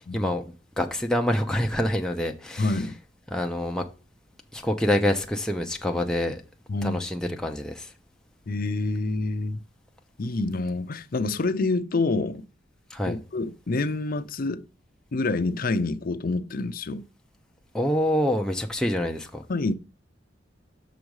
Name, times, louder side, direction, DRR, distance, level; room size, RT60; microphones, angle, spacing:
voice 1, 0.1-2.7 3.3-3.8 4.5-6.4 6.8-7.9 12.9-13.2 17.7-19.4, left 1 dB, 5° left, 0.6 m, -26 dB
voice 2, 2.6-3.0 6.7-7.0 8.5-9.6 10.2-12.4 13.1-14.6 15.1-17.0 19.5-19.7, left 3 dB, 50° left, 0.5 m, -27 dB
6.2 x 5.1 x 4.7 m
head